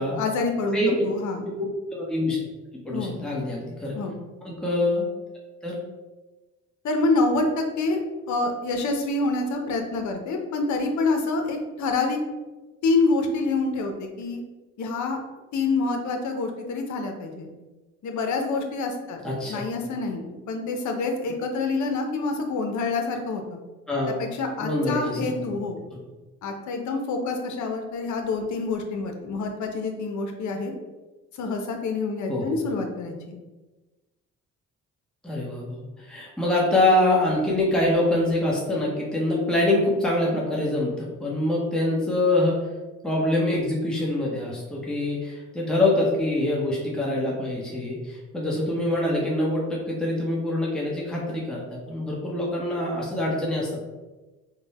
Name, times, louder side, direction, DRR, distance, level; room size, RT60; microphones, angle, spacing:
voice 1, 0.0-0.8 1.0-1.4 2.9-3.2 3.9-4.2 6.8-12.2 12.8-14.4 14.8-15.2 15.5-17.5 18.0-23.6 24.2-25.8 26.4-30.7 31.4-33.4, left 3 dB, 70° left, 4 dB, 0.7 m, -27 dB
voice 2, 0.7-1.0 1.4-1.7 1.9-2.4 2.8-3.9 4.4-5.0 5.6-5.8 19.2-19.6 23.9-24.2 24.6-25.2 25.9-26.0 32.3-32.5 35.2-42.6 43.0-51.6 51.9-53.8, left 1 dB, 5° left, -4 dB, 0.9 m, -25 dB
3.7 x 2.2 x 4.1 m, 1.2 s
cardioid pair, 90°, 30 cm